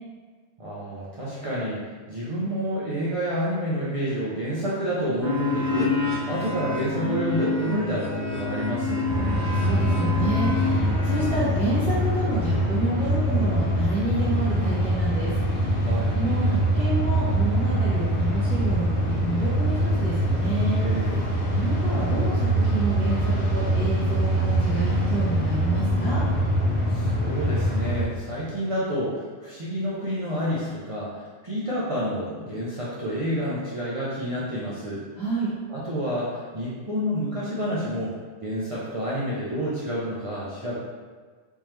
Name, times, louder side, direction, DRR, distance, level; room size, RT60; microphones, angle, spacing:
voice 1, 0.6-1.8 2.1-9.1 15.8-16.1 20.7-21.3 26.9-35.0 35.7-38.1 38.4-40.7, equal, 40° right, -9 dB, 0.6 m, -29 dB
sound 1, 5.2-11.4, left 3 dB, 75° right, 1.4 m, -28 dB
sound 2, 9.1-28.1, equal, 75° left, 1.0 m, -23 dB
voice 2, 9.3-15.8 16.1-20.8 21.5-26.2 35.2-35.5, right 2 dB, 5° left, -15 dB, 0.9 m, -29 dB
3.5 x 2.9 x 3.2 m, 1.5 s
omnidirectional pair, 1.1 m